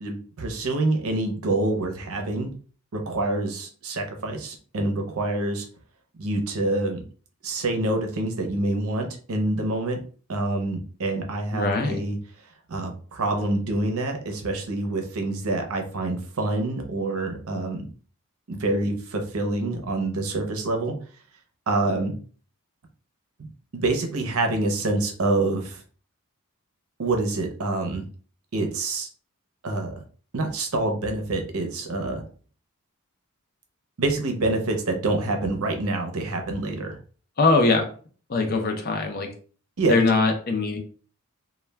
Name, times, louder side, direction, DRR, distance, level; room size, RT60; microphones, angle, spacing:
voice 1, 0.0-2.5 2.9-5.7 6.2-7.0 7.4-10.0 10.3-12.2 12.7-17.8 18.5-20.9 21.7-22.1 23.7-25.8 27.0-28.0 28.5-29.1 29.6-29.9 30.3-32.2 34.0-37.0 39.8-40.0, right 2 dB, 75° right, 4 dB, 0.6 m, -26 dB
voice 2, 11.5-12.0 37.4-37.9 38.3-39.3 39.9-40.8, left 3 dB, 45° left, 3 dB, 0.5 m, -21 dB
2.2 x 2.2 x 3.2 m, 0.41 s
head